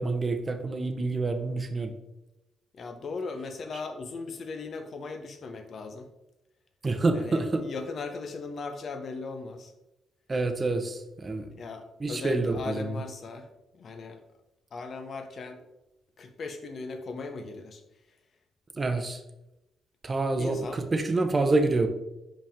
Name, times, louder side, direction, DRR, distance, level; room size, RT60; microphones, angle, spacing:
voice 1, 0.0-1.9 6.8-7.6 10.3-11.5 12.0-13.0 18.8-19.2 20.0-21.9, right 3 dB, 30° right, 7 dB, 0.8 m, -27 dB
voice 2, 2.7-6.1 7.1-9.7 11.6-13.5 13.7-14.2 14.7-15.6 16.2-17.8 20.4-20.8, left 4 dB, 50° left, 7 dB, 0.8 m, -38 dB
5.4 x 5.1 x 3.6 m, 0.94 s
cardioid pair, 90°, 0 cm